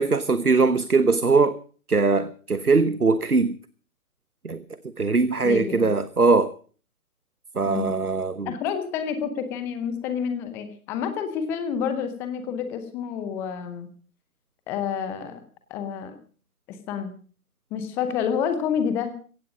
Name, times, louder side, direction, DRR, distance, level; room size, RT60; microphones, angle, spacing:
voice 1, 0.0-1.6 1.9-3.6 4.4-4.6 5.0-6.5 7.5-8.5, right 4 dB, 90° right, 1.2 m, -21 dB
voice 2, 5.4-5.9 7.6-7.9 8.5-13.9 14.7-15.4 15.7-16.2 16.7-17.1 17.7-19.1, left 7 dB, 5° left, 0.7 m, -29 dB
16.5 x 16.0 x 5.0 m
figure-of-eight pair, 135°, 43 cm